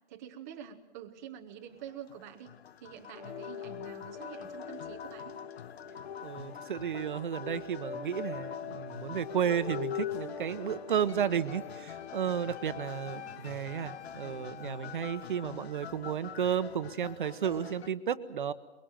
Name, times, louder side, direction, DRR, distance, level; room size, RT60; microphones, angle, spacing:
voice 1, 0.1-2.5 2.8-5.3 13.1-13.4, right 9 dB, 15° right, 2 dB, 0.8 m, -47 dB
sound 1, 1.7-17.9, left 8 dB, 60° left, 0.9 m, -47 dB
sound 2, 3.1-12.5, left 8 dB, 40° left, 2.4 m, -42 dB
voice 2, 6.2-18.5, right 8 dB, 45° right, 13 dB, 1.1 m, -33 dB
Wind instrument woodwind instrument, 11.5-15.8, left 11 dB, 85° left, 1.1 m, -48 dB
23.0 x 22.5 x 9.0 m, 1.0 s
hypercardioid pair, 170°, 34 cm